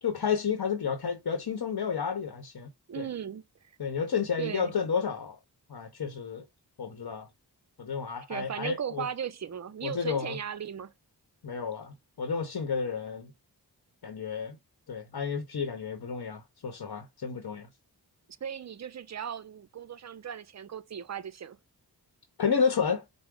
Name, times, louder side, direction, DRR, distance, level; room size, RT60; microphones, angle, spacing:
voice 1, 0.0-2.7 3.0-3.1 3.8-5.4 5.7-6.5 6.8-7.3 7.8-9.0 9.8-10.4 11.4-13.3 14.0-14.6 14.9-17.7 22.4-23.0, left 6 dB, 60° left, 0.9 m, -31 dB
voice 2, 2.9-3.4 4.4-4.7 8.3-10.9 18.4-21.6, right 8 dB, 40° right, 0.5 m, -37 dB
4.6 x 2.0 x 3.7 m
wide cardioid pair, 65°, 41 cm